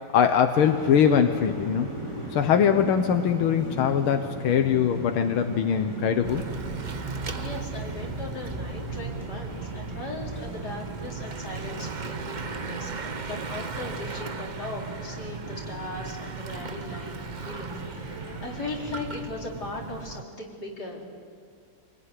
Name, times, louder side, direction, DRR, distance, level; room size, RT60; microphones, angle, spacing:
voice 1, 0.1-1.9 2.3-6.5, left 8 dB, 90° left, 6 dB, 1.9 m, -22 dB
sound 1, 0.5-19.3, right 1 dB, 15° right, 4.6 m, -39 dB
Bicycle / Mechanisms, 6.2-20.2, right 4 dB, 75° right, 0.4 m, -36 dB
voice 2, 7.0-17.1 17.4-21.0, left 2 dB, 50° left, -2 dB, 4.7 m, -38 dB
27.5 x 20.5 x 9.9 m, 2.1 s
omnidirectional pair, 2.2 m